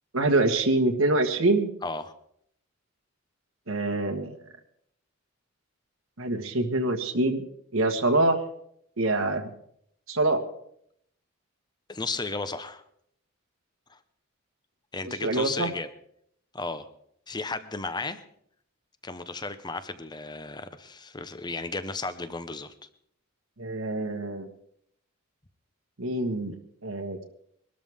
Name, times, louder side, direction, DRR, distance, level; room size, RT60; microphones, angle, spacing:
voice 1, 0.1-1.7 3.7-4.3 6.2-7.4 7.7-8.4 9.0-9.5 10.1-10.4 15.0-15.7 23.6-24.5 26.0-26.5 26.8-27.2, right 2 dB, 80° right, 6 dB, 1.5 m, -25 dB
voice 2, 1.8-2.1 11.9-12.8 13.9-14.0 14.9-15.9 16.5-16.9 17.3-18.2 19.0-22.9, left 3 dB, 20° left, 12 dB, 0.9 m, -34 dB
22.5 x 13.0 x 3.6 m, 0.69 s
head